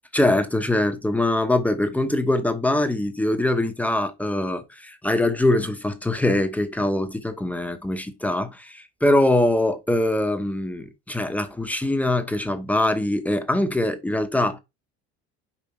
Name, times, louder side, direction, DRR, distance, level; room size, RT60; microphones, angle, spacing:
voice 1, 0.1-14.6, left 1 dB, 5° left, 0.8 m, -23 dB
5.5 x 4.9 x 4.3 m
cardioid pair, 140°, 29 cm